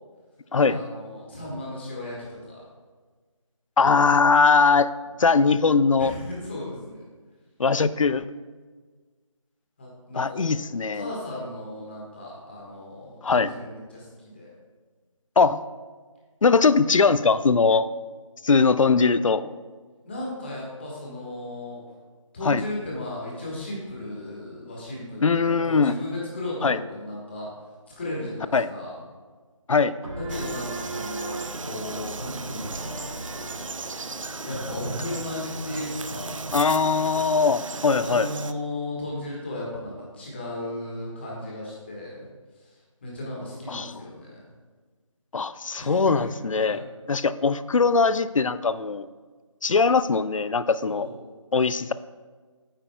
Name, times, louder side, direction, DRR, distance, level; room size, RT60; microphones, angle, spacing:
voice 1, 0.7-2.6 6.0-7.1 9.8-10.4 10.8-14.5 20.0-21.8 22.3-27.5 28.0-29.0 30.2-33.1 34.4-36.5 38.0-42.3 42.5-44.4 45.8-46.3 46.5-46.8 50.9-51.2, left 1 dB, 20° left, -4 dB, 1.5 m, -35 dB
voice 2, 3.8-4.9 5.2-6.1 7.6-8.2 10.1-11.1 13.2-13.5 15.4-15.6 16.4-17.9 18.4-19.5 22.5-22.6 25.2-25.9 26.6-26.8 28.5-28.7 29.7-29.9 36.5-38.3 43.7-43.9 45.3-46.8 47.1-49.1 49.6-51.1 51.5-51.9, left 4 dB, 75° left, 15 dB, 0.4 m, -21 dB
sound 1, 30.0-37.3, right 2 dB, 85° right, 2.1 m, -39 dB
Frog, 30.3-38.5, right 4 dB, 70° right, 0.5 m, -37 dB
8.9 x 8.8 x 2.3 m, 1.4 s
figure-of-eight pair, 170°, 17 cm